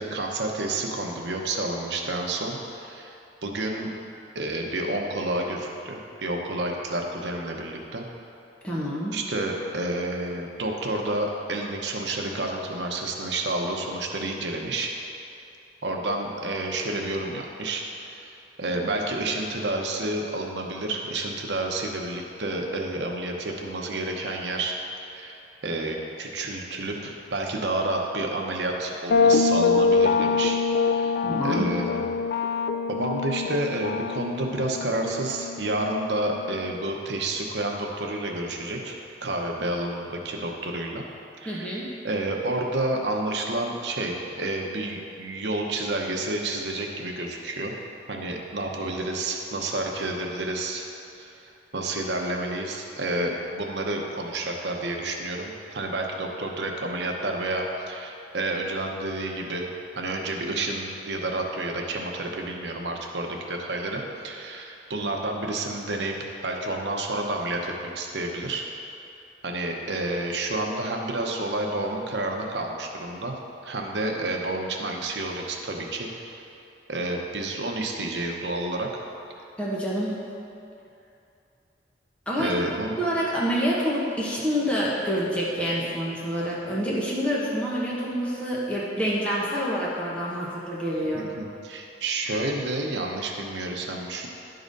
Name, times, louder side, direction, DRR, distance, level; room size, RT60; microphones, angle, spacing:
voice 1, 0.0-3.9 4.3-8.1 9.1-14.9 15.8-17.8 18.2-18.3 18.6-24.8 25.1-31.2 31.4-32.0 32.9-41.1 41.4-41.8 42.0-47.7 48.1-50.8 51.2-59.7 60.0-68.6 69.4-73.3 73.6-76.5 76.9-78.9 82.4-82.9 91.1-94.3, right 2 dB, 75° right, 1 dB, 0.9 m, -30 dB
voice 2, 8.6-9.2 31.2-31.7 41.4-41.9 79.6-80.2 82.3-91.3, equal, 5° left, -7 dB, 1.1 m, -27 dB
sound 1, 29.1-36.7, left 4 dB, 60° left, 0.4 m, -25 dB
11.0 x 3.9 x 5.3 m, 2.7 s
head